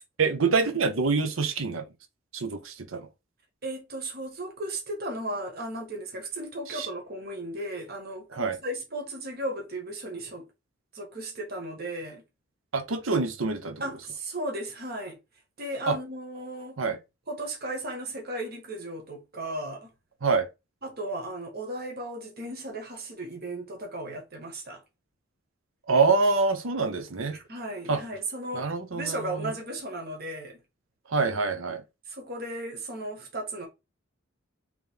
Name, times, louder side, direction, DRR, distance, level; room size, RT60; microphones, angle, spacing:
voice 1, 0.2-1.9 2.3-3.1 6.7-6.9 8.3-8.6 12.7-13.8 15.9-16.0 16.8-17.0 20.2-20.5 25.9-27.4 27.9-28.0 28.5-29.5 31.1-31.8, right 4 dB, 90° right, 0.8 m, -26 dB
voice 2, 3.6-10.5 10.9-12.2 13.8-15.2 15.6-16.8 17.3-19.9 20.8-24.8 27.3-30.6 32.1-33.7, right 1 dB, 55° right, 1.4 m, -35 dB
3.5 x 3.2 x 3.6 m
head